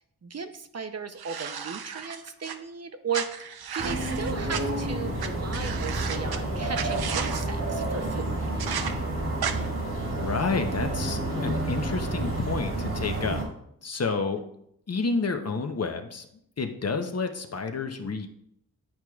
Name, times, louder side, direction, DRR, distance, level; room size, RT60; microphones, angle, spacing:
voice 1, 0.2-8.3, right 5 dB, 45° right, 8 dB, 0.6 m, -36 dB
sound 1, 1.2-2.5 3.1-4.6 5.2-5.3 5.5-6.4 6.7-7.4 8.6-8.9 9.4-9.5, right 7 dB, 90° right, 0.6 m, -33 dB
sound 2, 3.8-13.4, right 1 dB, 60° right, 1.9 m, -30 dB
voice 2, 10.1-13.4 13.8-14.4 14.9-16.3 16.6-18.3, left 4 dB, 45° left, 6 dB, 0.7 m, -29 dB
10.0 x 4.6 x 2.3 m, 0.72 s
wide cardioid pair, 75°, 36 cm